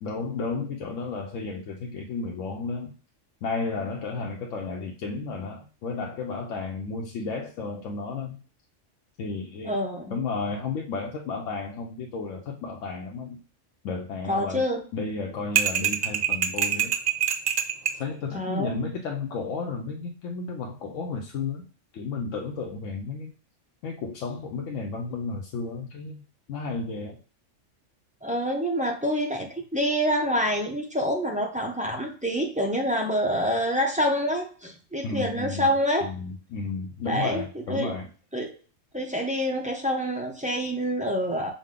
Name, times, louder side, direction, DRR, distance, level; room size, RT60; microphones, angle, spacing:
voice 1, 0.0-2.9 3.4-8.4 9.2-9.8 10.1-13.4 13.8-14.6 14.9-17.0 18.0-21.7 21.9-23.3 23.8-26.2 26.5-27.2 35.0-35.7 36.0-38.1, left 4 dB, 80° left, 2 dB, 1.0 m, -33 dB
voice 2, 9.6-10.2 14.3-14.8 18.3-18.8 28.2-36.1 37.0-37.9 38.3-38.5 38.9-41.5, equal, 10° right, 0 dB, 0.4 m, -27 dB
sound 1, 15.6-18.0, right 9 dB, 80° right, 0.3 m, -25 dB
5.1 x 2.1 x 3.7 m, 0.39 s
omnidirectional pair, 1.3 m